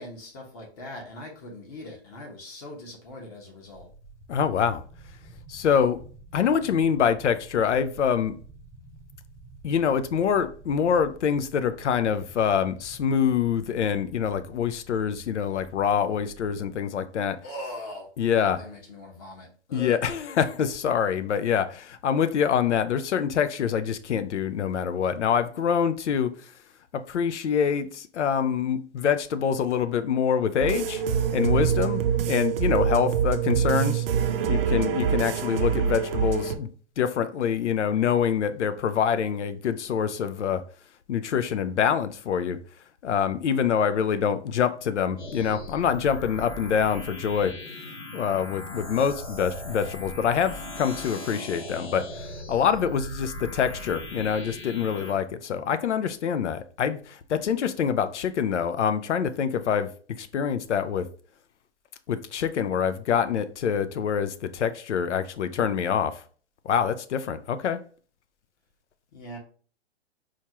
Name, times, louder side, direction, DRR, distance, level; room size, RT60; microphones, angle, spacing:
voice 1, 0.0-3.9 17.4-18.1 18.5-20.0 69.1-69.4, left 1 dB, 35° left, 1.2 m, -40 dB
sound 1, 3.6-16.8, right 2 dB, ahead, 0.8 m, -49 dB
voice 2, 4.3-4.8 5.5-6.0 6.3-8.4 9.6-17.4 18.2-18.6 19.7-26.4 26.9-31.0 31.3-34.0 34.5-36.7 37.0-40.6 41.1-42.6 43.0-47.6 48.1-52.1 52.5-59.9 60.2-61.1 62.1-66.2 66.6-67.8, left 7 dB, 90° left, 0.6 m, -25 dB
sound 2, 30.6-36.6, right 8 dB, 55° right, 0.5 m, -25 dB
sound 3, 45.2-55.1, left 1 dB, 75° left, 1.5 m, -39 dB
4.3 x 2.4 x 2.9 m
hypercardioid pair, 145°, 34 cm